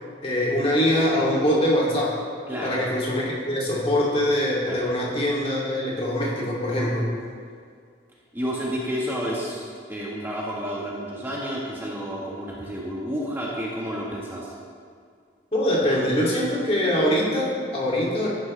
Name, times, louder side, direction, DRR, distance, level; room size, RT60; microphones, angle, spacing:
voice 1, 0.2-2.2 2.6-7.1 15.5-18.3, equal, 35° left, -5 dB, 2.6 m, -23 dB
voice 2, 2.5-2.8 4.7-4.9 8.3-9.6 9.9-14.5, equal, 10° right, -4 dB, 1.3 m, -30 dB
14.5 x 11.0 x 3.3 m, 2.1 s
head